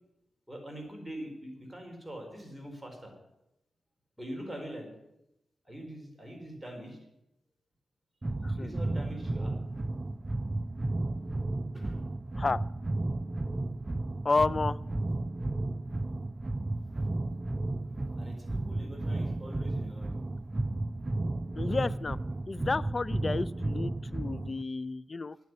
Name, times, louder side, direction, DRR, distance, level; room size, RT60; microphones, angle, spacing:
voice 1, 0.5-3.1 4.2-4.9 5.6-7.0 8.5-9.5 11.7-12.0 16.9-17.4 18.1-20.2, right 1 dB, 5° right, 2 dB, 4.5 m, -43 dB
sound 1, 8.2-24.6, right 2 dB, 25° right, 0.4 m, -33 dB
voice 2, 14.2-14.8 21.6-22.2 22.5-25.4, left 3 dB, 35° left, 19 dB, 0.5 m, -31 dB
11.0 x 9.4 x 9.6 m, 0.88 s
cardioid pair, 85°, 0 cm